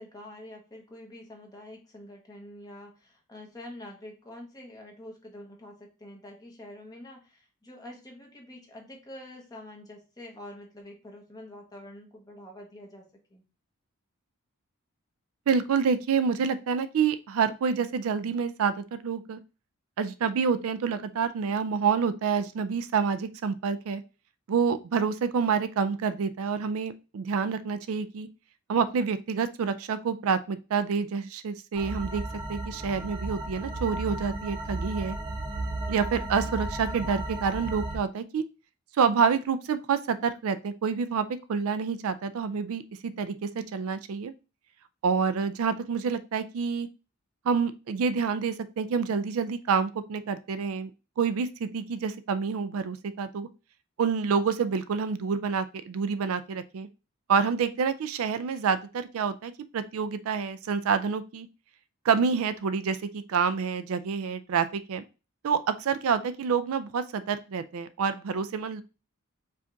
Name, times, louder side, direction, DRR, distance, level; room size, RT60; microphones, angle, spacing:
voice 1, 0.0-13.0 13.3-13.4, left 1 dB, 15° left, 0 dB, 1.1 m, -46 dB
voice 2, 15.5-19.4 20.0-24.0 24.5-28.3 28.7-32.2 32.5-35.2 35.9-38.4 39.0-44.3 45.0-46.9 47.5-50.9 51.2-53.5 54.0-56.9 57.3-61.5 62.0-65.0 65.4-68.8, right 6 dB, 70° right, 12 dB, 0.4 m, -28 dB
Deep Back Ground Inharmonic Resonace, 31.7-38.0, right 2 dB, 20° right, 0.8 m, -34 dB
5.0 x 2.4 x 3.8 m, 0.31 s
head